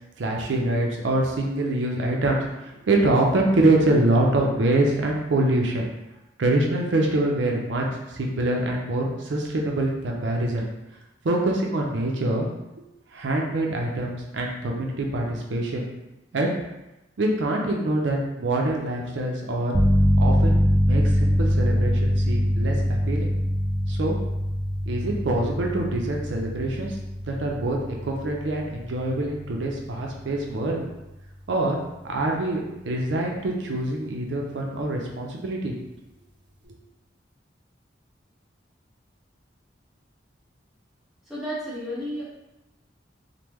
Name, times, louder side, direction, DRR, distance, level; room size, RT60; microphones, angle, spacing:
voice 1, 0.2-5.9 6.4-10.6 11.2-12.5 13.1-15.9 16.3-16.5 17.2-19.7 20.2-23.3 23.9-24.2 24.9-30.8 31.5-31.8 32.0-35.7 36.7-36.8, right 2 dB, 85° right, 0 dB, 0.5 m, -25 dB
sound 1, 19.7-30.3, equal, 25° right, 0.4 m, -23 dB
voice 2, 41.3-42.2, equal, ahead, -10 dB, 1.0 m, -32 dB
3.4 x 2.1 x 3.0 m, 0.95 s
head